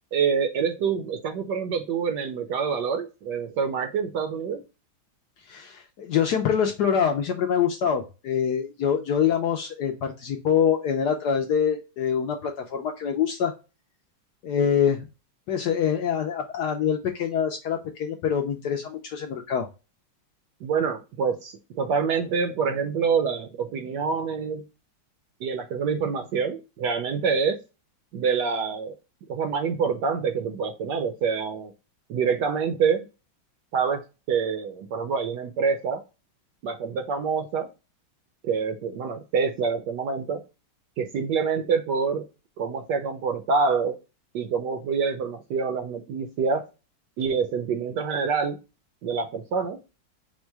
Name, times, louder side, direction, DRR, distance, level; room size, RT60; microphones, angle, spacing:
voice 1, 0.1-4.6 20.6-24.6 25.4-27.6 28.1-28.9 29.3-31.7 32.1-33.1 33.7-36.0 36.6-37.7 38.4-40.4 41.0-42.2 42.6-44.0 44.3-46.6 47.2-48.6 49.0-49.8, right 5 dB, 70° right, 6 dB, 1.1 m, -26 dB
voice 2, 5.5-13.5 14.4-15.0 15.5-19.7, left 8 dB, 70° left, 4 dB, 1.0 m, -25 dB
4.4 x 2.2 x 4.5 m, 0.28 s
omnidirectional pair, 2.3 m